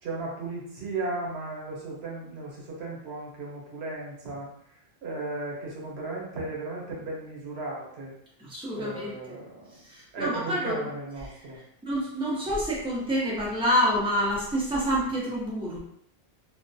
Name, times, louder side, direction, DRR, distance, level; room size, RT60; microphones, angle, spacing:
voice 1, 0.0-4.5 5.0-8.1 8.7-9.7 10.1-11.6, right 2 dB, 90° right, -3 dB, 1.1 m, -35 dB
voice 2, 8.4-9.1 9.9-10.8 11.9-15.8, equal, 5° right, -6 dB, 0.6 m, -27 dB
2.4 x 2.1 x 2.6 m, 0.71 s
omnidirectional pair, 1.0 m